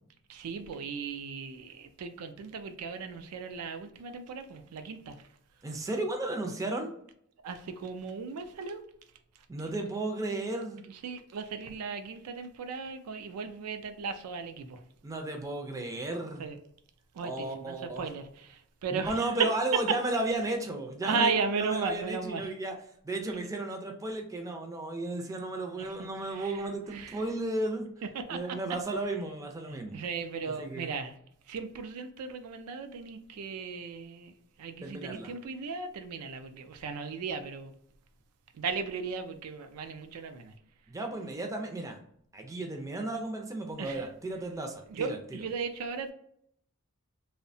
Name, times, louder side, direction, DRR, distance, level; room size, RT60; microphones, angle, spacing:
voice 1, 0.3-5.2 7.4-8.8 10.9-14.8 16.4-16.6 17.1-19.5 19.9-20.0 21.0-22.4 25.8-26.6 26.9-27.2 28.1-28.6 29.7-31.2 31.5-34.3 34.6-37.7 38.5-40.5 43.8-44.1 44.9-46.1, right 5 dB, 90° right, 0.4 m, -36 dB
voice 2, 5.6-6.9 9.5-10.8 15.0-16.5 17.2-18.0 18.9-22.8 23.0-27.9 28.3-30.0 30.5-30.9 34.8-35.3 40.9-42.0 42.3-45.2, right 2 dB, 15° right, 0.4 m, -34 dB
2.7 x 2.1 x 2.6 m
head